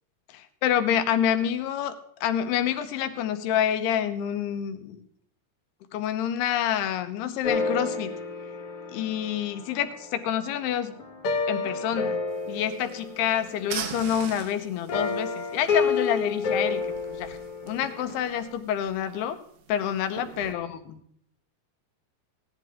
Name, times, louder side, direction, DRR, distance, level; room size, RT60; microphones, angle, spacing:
voice 1, 0.3-5.0 5.9-8.1 8.9-10.9 11.5-12.2 12.5-16.8 17.1-17.4 17.7-19.4 19.7-20.8, left 9 dB, 80° left, 9 dB, 2.9 m, -27 dB
sound 1, 7.4-10.5 11.0-13.7 14.9-18.2, left 4 dB, 60° left, 1.5 m, -30 dB
sound 2, 12.3-20.5, right 8 dB, 85° right, 3.3 m, -42 dB
16.5 x 11.5 x 3.5 m, 0.66 s
omnidirectional pair, 4.7 m